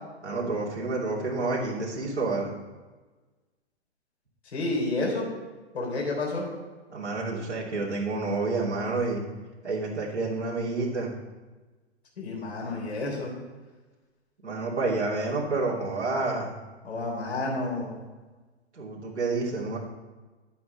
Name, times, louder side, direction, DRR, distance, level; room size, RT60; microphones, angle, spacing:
voice 1, 0.2-2.6 6.9-9.2 9.6-11.1 12.6-12.7 14.4-16.5 18.7-19.8, right 3 dB, 90° right, -4 dB, 2.8 m, -29 dB
voice 2, 4.5-5.3 5.7-6.5 12.2-13.3 16.8-18.0, left 2 dB, 70° left, -2 dB, 3.8 m, -30 dB
11.0 x 8.4 x 4.0 m, 1.3 s
figure-of-eight pair, 115°, 33 cm